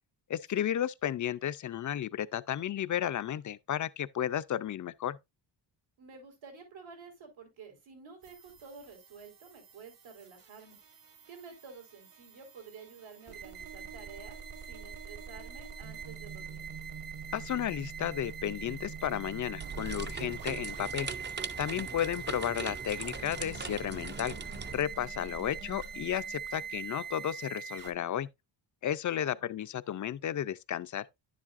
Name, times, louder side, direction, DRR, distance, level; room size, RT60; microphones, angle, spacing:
voice 1, 0.3-5.2 17.3-21.1 21.6-24.3 24.7-28.3 28.8-31.0, left 10 dB, 45° left, 0.4 m, -33 dB
voice 2, 6.0-10.8 11.3-16.7 21.7-22.0 29.1-29.4, right 5 dB, 80° right, 4.0 m, -51 dB
sound 1, 8.2-27.9, right 6 dB, 45° right, 1.4 m, -44 dB
sound 2, 19.6-24.8, right 4 dB, 25° right, 0.5 m, -40 dB
10.5 x 7.4 x 2.5 m
wide cardioid pair, 175°, 46 cm